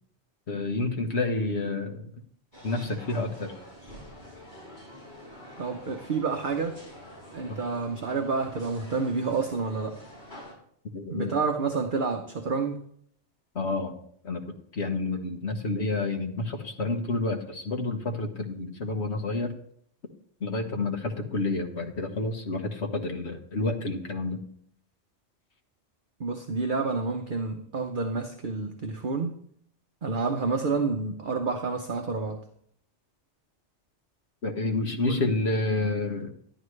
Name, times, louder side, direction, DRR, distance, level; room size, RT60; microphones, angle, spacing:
voice 1, 0.5-2.1 2.6-3.5 10.9-11.3 13.5-14.0 14.2-19.6 20.4-24.4 34.4-36.3, left 2 dB, 65° left, 5 dB, 1.6 m, -29 dB
sound 1, 2.5-10.5, equal, 40° left, 5.9 m, -47 dB
voice 2, 5.6-6.8 7.3-10.0 11.1-12.8 26.2-29.4 30.0-32.4 35.1-35.2, right 4 dB, 50° right, 5 dB, 1.0 m, -29 dB
12.0 x 11.5 x 3.3 m, 0.65 s
omnidirectional pair, 1.2 m